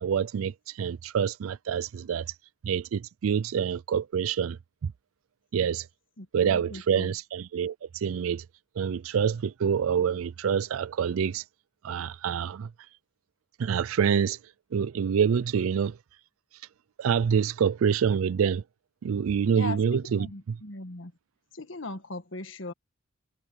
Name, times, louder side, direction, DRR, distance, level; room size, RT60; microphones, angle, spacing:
voice 1, 0.0-2.3 2.6-4.9 5.5-5.9 6.3-8.4 8.8-11.4 11.8-12.7 13.6-14.4 14.7-16.0 17.0-18.6 19.0-20.6, right 7 dB, 90° right, 0.4 m, -26 dB
voice 2, 6.2-7.1 19.5-19.8 20.2-21.1 21.5-22.7, left 2 dB, 65° left, 1.6 m, -39 dB
head